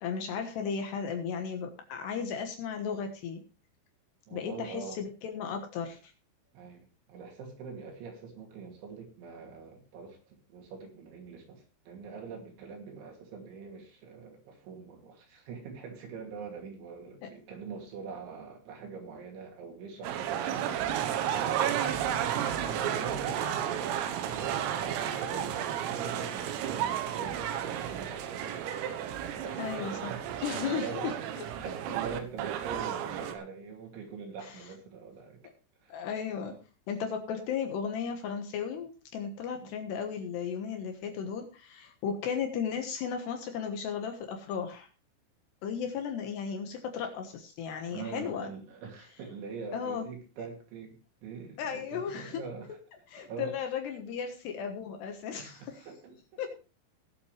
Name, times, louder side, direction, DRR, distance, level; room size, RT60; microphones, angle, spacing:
voice 1, 0.0-3.4 4.3-6.1 17.2-17.3 29.6-30.1 30.4-31.1 34.4-34.5 35.9-36.6 36.9-44.9 45.6-48.5 49.7-50.1 51.6-52.4 53.1-55.9 56.4-56.6, left 7 dB, 70° left, 4 dB, 3.0 m, -35 dB
voice 2, 4.3-5.0 6.5-10.2 10.5-21.0 21.3-22.1 22.6-23.8 24.3-28.6 29.3-30.3 30.6-31.1 31.5-35.4 35.8-36.0 36.4-36.6 39.6-39.7 47.9-52.7 53.2-53.5 55.4-56.4, right 5 dB, 70° right, 1 dB, 4.9 m, -43 dB
sound 1, 20.0-33.3, right 10 dB, 85° right, 3.7 m, -32 dB
19.5 x 7.8 x 3.3 m, 0.34 s
omnidirectional pair, 5.8 m